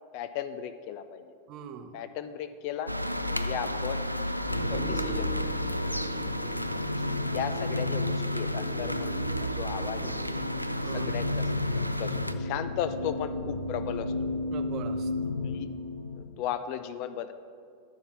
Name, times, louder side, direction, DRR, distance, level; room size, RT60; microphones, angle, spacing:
voice 1, 0.1-1.3 1.9-2.9 3.3-4.0 4.7-5.4 7.1-10.1 10.7-11.4 11.7-14.1 15.4-15.7 16.1-17.3, left 9 dB, 45° left, 11 dB, 0.4 m, -36 dB
voice 2, 1.5-2.0 6.4-6.7 10.0-10.2 10.8-11.3 14.5-15.1, right 7 dB, 35° right, 7 dB, 0.7 m, -42 dB
sound 1, 2.9-12.3, equal, 90° right, 0.3 m, -33 dB
sound 2, 4.5-16.5, left 2 dB, 85° left, 0.6 m, -33 dB
11.0 x 4.0 x 5.9 m, 2.2 s
figure-of-eight pair, 90°, 0 cm